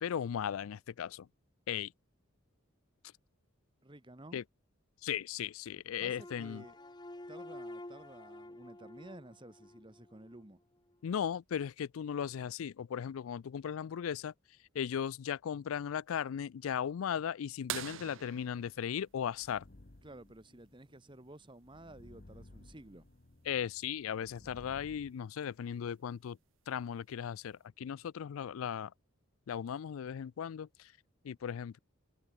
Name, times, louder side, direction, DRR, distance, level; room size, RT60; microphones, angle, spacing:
voice 1, 0.0-1.3 1.7-1.9 4.3-4.4 5.0-6.6 11.0-14.3 14.7-19.7 23.5-26.4 26.7-28.9 29.5-30.9 31.2-31.8, left 8 dB, 80° left, 0.4 m, -37 dB
voice 2, 3.8-4.4 6.0-6.8 7.3-10.6 20.0-23.1, right 1 dB, 25° right, 1.4 m, -53 dB
sound 1, 6.2-10.5, left 1 dB, 20° left, 1.1 m, -49 dB
sound 2, 17.7-20.1 22.1-22.2 24.4-24.5 26.2-26.5 27.3-27.4, right 10 dB, 65° right, 0.8 m, -43 dB
sound 3, 18.7-25.1, left 1 dB, 45° left, 1.2 m, -58 dB
head